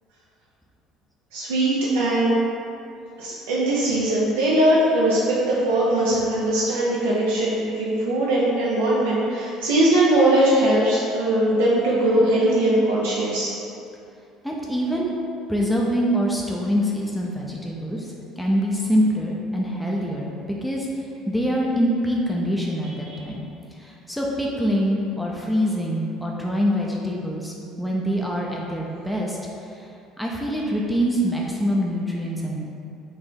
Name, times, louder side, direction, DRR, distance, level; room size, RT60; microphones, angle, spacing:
voice 1, 1.3-2.3 3.2-13.5 23.1-23.2, right 1 dB, 75° right, -7 dB, 0.5 m, -20 dB
voice 2, 14.4-15.1 15.5-20.9 21.3-23.4 23.7-29.9 30.2-32.5, equal, 5° left, -3 dB, 0.6 m, -25 dB
4.2 x 2.6 x 3.6 m, 2.6 s
hypercardioid pair, 60°, 0 cm